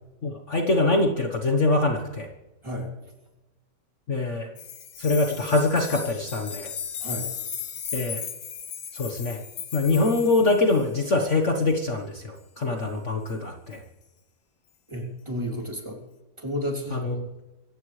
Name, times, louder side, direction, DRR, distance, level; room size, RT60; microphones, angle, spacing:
voice 1, 0.2-2.3 4.1-4.5 5.0-6.7 7.9-8.2 8.9-9.4 9.7-13.8 16.9-17.3, left 2 dB, 45° left, 2 dB, 1.5 m, -24 dB
sound 1, 4.6-11.0 13.3-13.4, left 8 dB, 85° left, 1.8 m, -36 dB
voice 2, 14.9-16.0 16.4-17.0, equal, 15° right, 0 dB, 3.1 m, -31 dB
26.0 x 15.0 x 3.3 m, 1.1 s
omnidirectional pair, 1.9 m